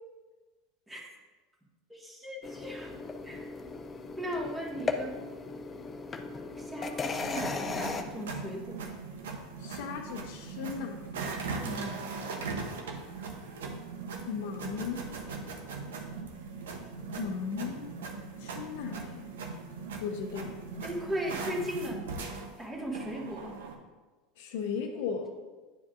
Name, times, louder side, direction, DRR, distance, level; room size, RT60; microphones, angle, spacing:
voice 1, 1.9-2.9 3.2-3.4 4.2-5.2 6.6-8.8 11.6-12.0 20.8-23.6, equal, 15° right, -2 dB, 1.7 m, -37 dB
sound 1, 2.4-8.0, left 4 dB, 30° left, 0.6 m, -37 dB
sound 2, 7.1-23.8, right 4 dB, 85° right, 0.8 m, -40 dB
voice 2, 9.6-11.0 14.3-15.1 17.2-17.9 18.4-19.3 20.0-20.6 24.4-25.3, left 6 dB, 70° left, 4 dB, 0.8 m, -36 dB
10.0 x 4.7 x 2.5 m, 1.3 s
hypercardioid pair, 90°, 0 cm